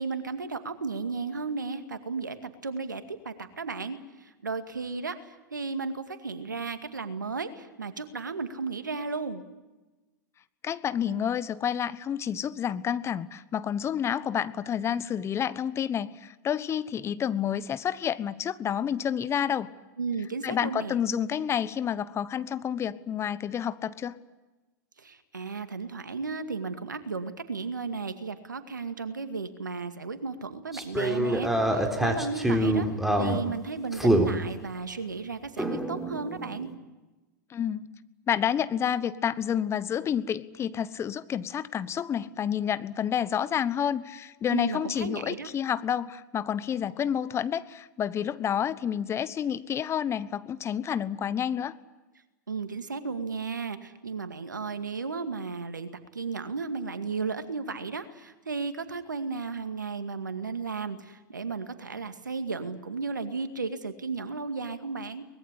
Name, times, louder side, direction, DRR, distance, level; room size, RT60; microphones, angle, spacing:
voice 1, 0.0-9.4 20.0-21.0 25.0-32.9 33.1-36.7 44.5-45.5 52.5-65.2, right 4 dB, 85° right, 10 dB, 2.1 m, -34 dB
voice 2, 10.6-19.7 20.4-24.2 37.5-37.9 38.3-51.8, left 9 dB, 25° left, 16 dB, 1.1 m, -29 dB
sound 1, 30.7-33.4 33.9-34.3 35.6-36.7, right 1 dB, ahead, 3.8 m, -26 dB
23.5 x 20.5 x 9.8 m, 1.1 s
hypercardioid pair, 95°, 10 cm